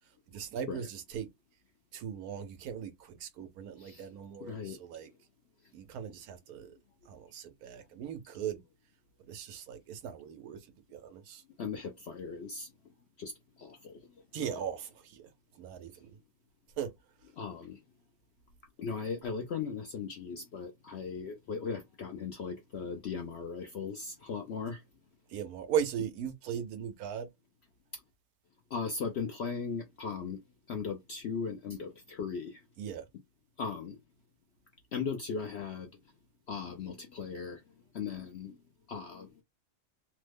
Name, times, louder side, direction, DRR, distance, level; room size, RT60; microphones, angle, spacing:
voice 1, 0.3-1.3 1.9-5.1 5.7-6.7 7.1-8.6 9.3-10.6 10.9-11.4 14.3-15.3 15.6-16.2 16.8-16.9 25.3-27.3 32.8-33.1, right 8 dB, 90° right, 1.2 m, -38 dB
voice 2, 4.4-4.8 11.6-12.7 13.2-14.0 14.5-14.6 17.3-17.8 18.8-24.8 28.7-30.4 30.7-32.6 33.6-34.0 34.9-35.9 36.5-37.6 37.9-38.6 38.9-39.3, left 5 dB, 65° left, 0.7 m, -38 dB
3.1 x 2.1 x 3.3 m
omnidirectional pair, 1.5 m